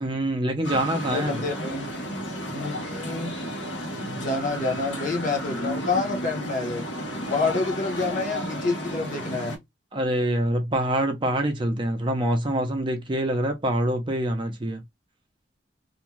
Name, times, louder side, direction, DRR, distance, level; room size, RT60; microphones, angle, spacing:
voice 1, 0.0-1.4 9.9-14.8, right 1 dB, 25° right, 0.5 m, -25 dB
sound 1, 0.6-9.6, equal, 85° left, 0.9 m, -33 dB
voice 2, 1.1-1.9 2.5-3.3 4.0-6.8 7.3-9.6, left 3 dB, 45° left, 0.9 m, -28 dB
2.5 x 2.2 x 3.0 m
head